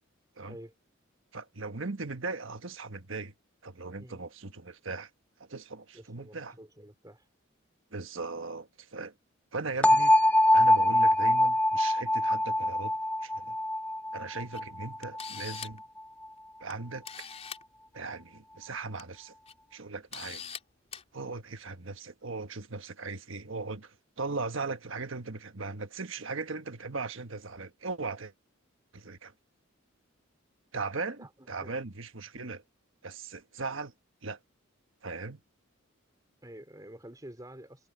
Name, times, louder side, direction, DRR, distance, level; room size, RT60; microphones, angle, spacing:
voice 1, 1.3-3.3 3.6-5.1 5.4-6.5 7.9-9.1 9.5-10.1 10.5-12.9 13.2-13.6 14.1-15.8 16.6-17.3 17.9-19.3 19.7-20.4 21.1-28.3 28.9-29.3 30.7-32.6 33.0-33.9 34.2-34.4 35.0-35.4, right 3 dB, 70° right, 1.4 m, -38 dB
voice 2, 5.9-7.3 31.2-31.8 36.4-37.9, right 1 dB, 20° right, 3.4 m, -49 dB
sound 1, 9.8-15.7, left 1 dB, 5° left, 0.6 m, -24 dB
Camera, 14.5-14.6 15.0-15.9 16.7-16.8 17.0-17.6 18.8-19.0 19.5-19.6 20.1-20.6 20.9-21.0, left 7 dB, 30° left, 3.6 m, -41 dB
head